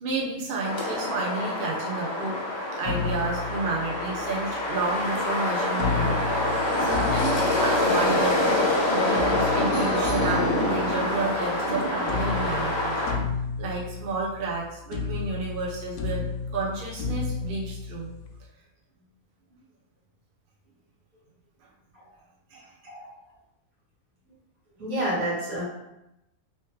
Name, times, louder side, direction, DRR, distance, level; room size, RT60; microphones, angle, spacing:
voice 1, 0.0-2.4 2.8-12.9 13.6-16.2 16.5-18.1 22.5-22.8, right 3 dB, 50° right, -4 dB, 0.8 m, -31 dB
sound 1, 0.6-13.1, left 1 dB, 30° left, 0.5 m, -26 dB
sound 2, 2.8-4.4 5.8-8.4 9.2-11.7 12.1-14.6 14.9-18.4, left 5 dB, 70° left, 0.9 m, -32 dB
voice 2, 24.8-25.6, right 1 dB, 80° right, -7 dB, 2.0 m, -29 dB
3.2 x 2.9 x 3.2 m, 0.89 s
omnidirectional pair, 1.5 m